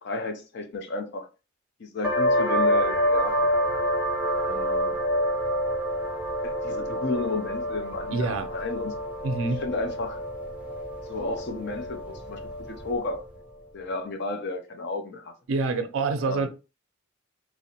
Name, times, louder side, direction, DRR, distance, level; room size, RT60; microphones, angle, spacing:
voice 1, 0.0-1.3 1.8-3.4 4.4-5.0 6.4-8.9 9.6-10.2 11.1-12.4 12.7-13.3 13.7-15.3 16.2-16.5, left 2 dB, 60° left, 0.5 m, -32 dB
sound 1, 2.0-13.3, equal, 5° right, 0.4 m, -27 dB
voice 2, 8.1-8.5 9.2-9.6 15.5-16.5, right 3 dB, 85° right, 0.4 m, -26 dB
2.6 x 2.0 x 2.7 m
head